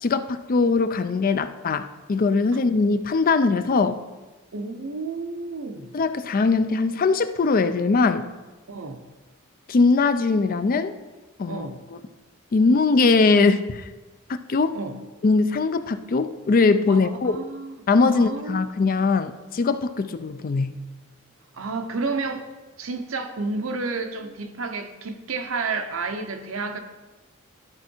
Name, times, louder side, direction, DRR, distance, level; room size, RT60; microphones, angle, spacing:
voice 1, 0.0-4.0 5.9-8.3 9.7-11.0 11.4-11.7 12.5-13.9 14.5-14.8 15.2-17.3 17.9-20.8, left 4 dB, 45° left, 10 dB, 0.4 m, -21 dB
voice 2, 4.5-5.9 8.7-9.0 11.5-11.8 14.7-15.0 16.9-17.8 18.0-18.6 21.5-22.5 22.8-26.8, right 3 dB, 80° right, 7 dB, 0.8 m, -31 dB
12.0 x 4.5 x 4.4 m, 1.2 s
head